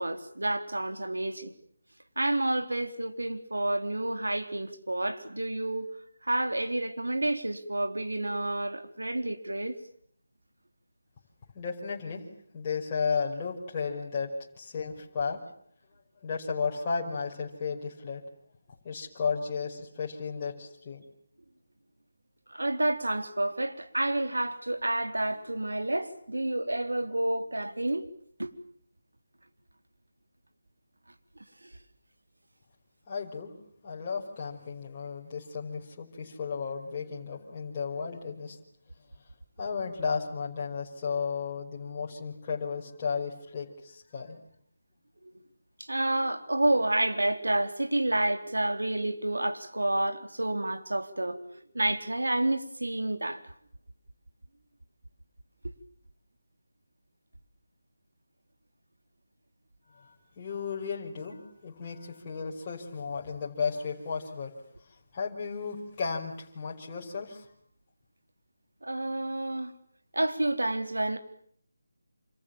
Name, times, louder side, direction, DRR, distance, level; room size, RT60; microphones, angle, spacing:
voice 1, 0.0-1.5 2.2-5.9 6.2-9.8 22.5-28.1 28.4-28.5 45.8-53.4 55.6-55.7 68.8-69.7 70.1-71.2, right 1 dB, 80° right, 3.8 m, -29 dB
voice 2, 11.5-12.2 12.5-14.3 14.6-15.4 16.2-18.2 18.8-21.0 33.1-33.5 33.8-38.6 39.6-44.4 59.9-64.5 65.1-67.5, left 5 dB, 25° left, 5.6 m, -34 dB
28.5 x 28.0 x 7.3 m
figure-of-eight pair, 160°, 0 cm